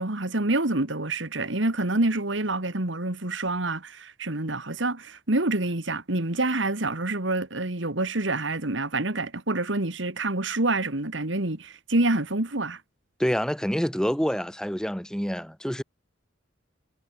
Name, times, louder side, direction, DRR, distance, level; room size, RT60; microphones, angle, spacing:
voice 1, 0.0-12.8, right 2 dB, 65° right, 2.3 m, -27 dB
voice 2, 13.2-15.8, equal, 5° left, 2.7 m, -27 dB
head